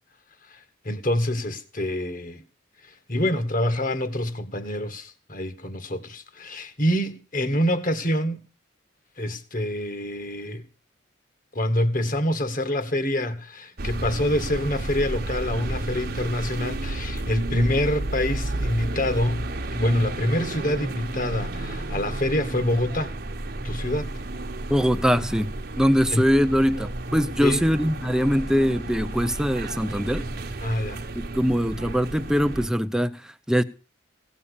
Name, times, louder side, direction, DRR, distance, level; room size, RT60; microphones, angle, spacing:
voice 1, 0.8-2.4 3.1-8.4 9.2-10.6 11.5-23.1 23.6-24.1 26.1-26.2 27.4-27.7 30.6-31.0, left 1 dB, 40° left, 1.9 m, -26 dB
sound 1, 13.8-32.7, right 2 dB, 50° right, 1.1 m, -32 dB
voice 2, 24.7-25.5 25.8-30.3 31.1-33.1 33.5-33.6, equal, 5° right, 0.7 m, -22 dB
17.0 x 7.2 x 8.4 m
head